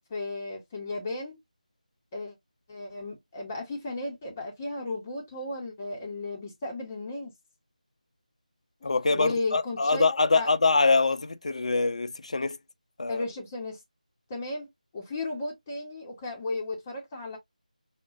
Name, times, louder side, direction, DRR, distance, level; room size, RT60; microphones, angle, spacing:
voice 1, 0.1-1.4 2.1-2.3 2.7-7.3 9.1-10.1 10.3-10.5 13.1-13.8 14.3-14.7 14.9-17.4, left 2 dB, 15° left, 0.7 m, -34 dB
voice 2, 8.8-12.6 13.0-13.2, left 3 dB, 50° left, 0.4 m, -24 dB
5.9 x 2.1 x 2.4 m
figure-of-eight pair, 165°, 4 cm